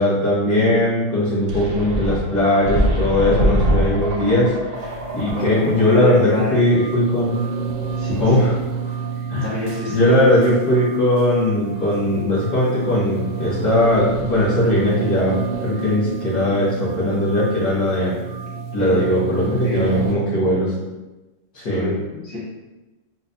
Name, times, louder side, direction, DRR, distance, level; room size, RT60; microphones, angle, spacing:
voice 1, 0.0-7.4 8.2-8.5 9.3-9.4 9.9-18.1 18.7-20.7 21.5-21.9, left 1 dB, 80° left, -12 dB, 1.6 m, -19 dB
sound 1, 1.5-6.0, right 1 dB, 70° right, 0.5 m, -23 dB
sound 2, 4.7-20.1, right 5 dB, 85° right, 1.1 m, -30 dB
voice 2, 5.8-6.6 8.0-8.5 9.1-10.1 18.8-19.1 19.6-20.6 21.7-22.4, left 2 dB, 60° left, -9 dB, 1.9 m, -28 dB
4.9 x 2.1 x 2.5 m, 1.1 s
omnidirectional pair, 1.6 m